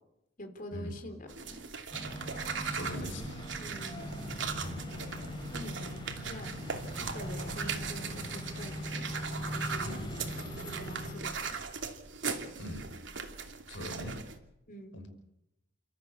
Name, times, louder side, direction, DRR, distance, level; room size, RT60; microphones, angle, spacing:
voice 1, 0.4-1.6 3.6-4.1 5.5-6.6 7.0-9.1 9.5-10.0 10.6-11.6 14.7-15.0, equal, 45° left, 5 dB, 4.0 m, -46 dB
sound 1, 1.3-14.4, right 5 dB, 75° right, 2.8 m, -39 dB
sound 2, 1.9-11.1, equal, 25° left, 4.3 m, -40 dB
voice 2, 2.7-3.3 4.6-4.9 9.8-10.1 12.6-12.9 13.7-14.2 14.9-15.1, left 1 dB, 85° left, 5 dB, 5.8 m, -40 dB
29.0 x 14.5 x 8.4 m, 0.84 s
head